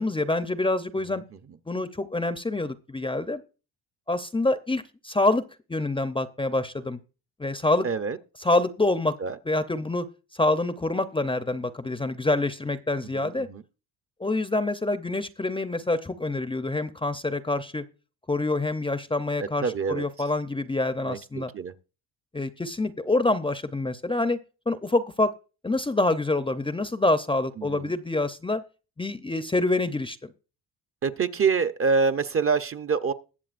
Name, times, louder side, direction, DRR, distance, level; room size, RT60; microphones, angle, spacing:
voice 1, 0.0-1.2 1.7-3.4 4.1-5.4 5.7-7.0 7.4-7.9 8.4-9.2 9.5-10.1 10.3-13.5 14.2-17.8 18.3-21.5 22.3-24.4 24.7-25.3 25.6-28.6 29.0-30.2, left 2 dB, 15° left, 0.6 m, -26 dB
voice 2, 1.1-1.4 7.8-8.2 9.2-9.4 13.0-13.6 19.4-20.1 21.0-21.7 27.6-27.9 31.0-33.1, right 5 dB, 35° right, 0.8 m, -26 dB
21.0 x 7.1 x 2.5 m
supercardioid pair, 80°, 41 cm